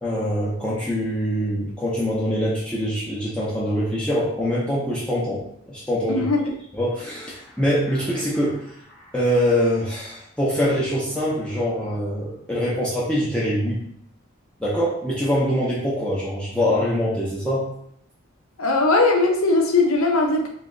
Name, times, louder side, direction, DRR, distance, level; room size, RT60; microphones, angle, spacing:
voice 1, 0.0-6.3 6.7-8.7 9.1-13.8 14.6-17.7, equal, 5° left, -7 dB, 0.7 m, -24 dB
voice 2, 6.1-6.5 18.6-20.5, left 3 dB, 80° left, 2 dB, 0.7 m, -19 dB
3.1 x 2.8 x 3.8 m, 0.70 s
head